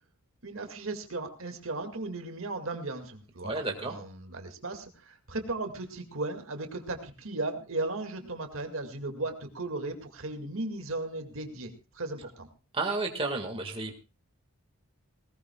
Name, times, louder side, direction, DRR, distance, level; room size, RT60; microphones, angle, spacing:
voice 1, 0.4-12.5, right 2 dB, 65° right, 5 dB, 2.2 m, -36 dB
voice 2, 3.4-4.0 12.7-14.0, right 3 dB, 25° right, 3 dB, 1.9 m, -32 dB
19.0 x 19.0 x 2.4 m, 0.33 s
head